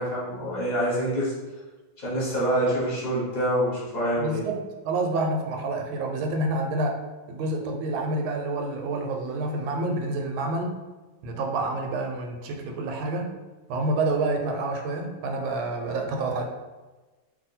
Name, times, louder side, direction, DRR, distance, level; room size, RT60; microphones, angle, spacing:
voice 1, 0.0-1.3 2.0-4.4, right 1 dB, 30° left, -6 dB, 0.8 m, -26 dB
voice 2, 4.2-7.0 7.3-10.8 11.2-13.3 13.7-16.4, right 2 dB, 85° right, 3 dB, 1.4 m, -28 dB
2.9 x 2.7 x 4.1 m, 1.2 s
omnidirectional pair, 2.2 m